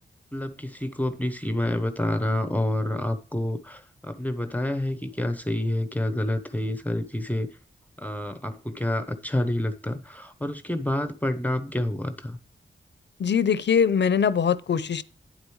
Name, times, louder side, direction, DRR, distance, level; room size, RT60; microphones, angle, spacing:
voice 1, 0.3-7.6 8.0-12.4, left 1 dB, 10° left, 0.8 m, -28 dB
voice 2, 13.2-15.0, left 7 dB, 70° left, 0.6 m, -22 dB
9.4 x 8.1 x 3.1 m
wide cardioid pair, 140°, 19 cm